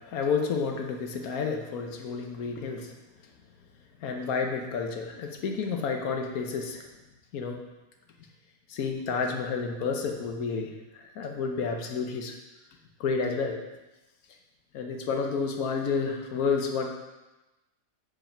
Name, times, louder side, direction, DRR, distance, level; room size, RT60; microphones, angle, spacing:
voice 1, 0.0-2.9 4.0-6.9 7.3-7.6 8.7-12.3 13.0-13.6 14.7-16.9, left 5 dB, 90° left, 3 dB, 1.3 m, -30 dB
7.5 x 5.0 x 4.4 m, 1.1 s
omnidirectional pair, 1.5 m